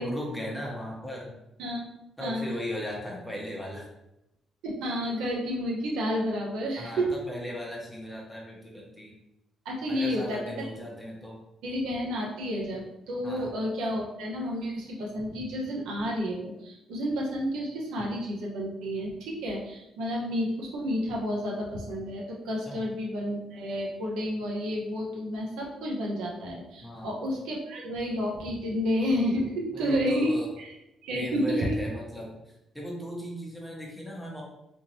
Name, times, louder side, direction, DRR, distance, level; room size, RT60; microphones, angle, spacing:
voice 1, 0.0-1.3 2.2-3.8 6.8-9.1 9.9-11.4 13.2-13.5 22.7-22.8 26.8-27.1 29.7-30.5 31.1-32.3 32.7-34.4, equal, 5° left, -3 dB, 1.0 m, -37 dB
voice 2, 2.2-2.5 4.6-7.1 9.6-10.4 11.6-30.7 31.0-31.8, equal, 90° right, -2 dB, 0.8 m, -30 dB
3.6 x 2.6 x 2.9 m, 0.88 s
cardioid pair, 90°, 0 cm